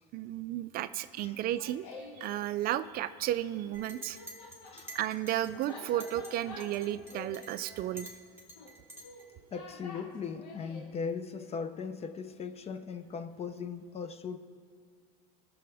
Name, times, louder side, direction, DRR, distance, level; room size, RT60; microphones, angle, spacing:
voice 1, 0.1-1.9 2.2-4.2 4.9-8.1, right 13 dB, 45° right, 12 dB, 0.4 m, -33 dB
Laughter, 1.3-2.4 3.6-10.9, left 3 dB, 80° left, 1.5 m, -49 dB
Chink clink, 3.7-6.3 6.6-9.3, right 1 dB, 10° right, 2.2 m, -49 dB
voice 2, 4.7-5.0 9.5-14.4, left 5 dB, 30° left, 12 dB, 0.6 m, -38 dB
18.0 x 6.9 x 3.4 m, 2.3 s
supercardioid pair, 110°, 21 cm